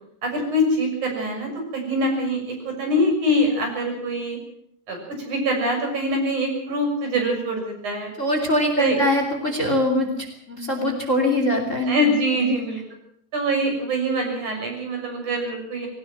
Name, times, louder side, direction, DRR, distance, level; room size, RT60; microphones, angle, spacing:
voice 1, 0.2-4.4 4.9-8.1 8.8-9.0 11.9-12.8 13.3-15.9, equal, 65° right, 2 dB, 7.9 m, -24 dB
voice 2, 8.2-12.0 12.5-12.6, left 1 dB, 25° left, 4 dB, 3.1 m, -22 dB
21.0 x 18.5 x 7.4 m, 0.69 s
omnidirectional pair, 3.8 m